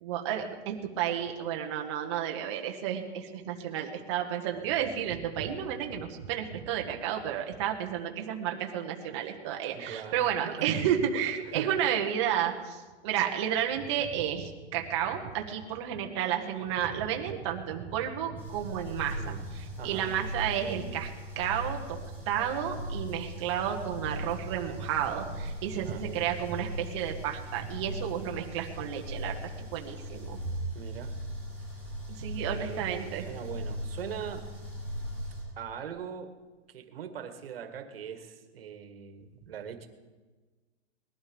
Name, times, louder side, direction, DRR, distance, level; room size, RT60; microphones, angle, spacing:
voice 1, 0.0-21.1 21.3-22.0 22.3-29.3 29.7-30.4 32.1-33.3, right 9 dB, 25° right, 2 dB, 1.3 m, -32 dB
voice 2, 9.7-10.9 11.4-11.7 19.2-19.4 19.8-20.2 25.7-26.3 30.7-31.1 32.4-34.5 35.6-36.3 36.7-39.9, right 8 dB, 55° right, 8 dB, 1.8 m, -41 dB
sound 1, 18.4-35.4, equal, 5° left, 5.8 m, -39 dB
20.0 x 12.0 x 5.2 m, 1.3 s
hypercardioid pair, 175°, 34 cm